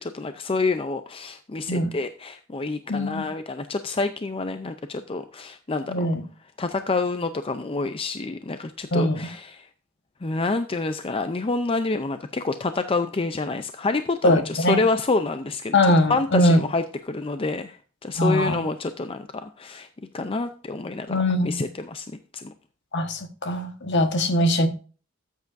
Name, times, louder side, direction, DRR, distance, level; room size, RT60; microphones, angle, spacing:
voice 1, 0.0-6.1 6.6-9.7 10.2-15.8 16.1-19.9 20.1-22.1 22.3-22.5, left 3 dB, 25° left, 0.5 m, -28 dB
voice 2, 2.9-3.2 5.9-6.2 8.9-9.3 14.2-14.8 15.7-16.6 18.2-18.6 21.1-21.6 22.9-24.7, left 1 dB, 55° left, 1.4 m, -21 dB
13.5 x 8.2 x 2.6 m
head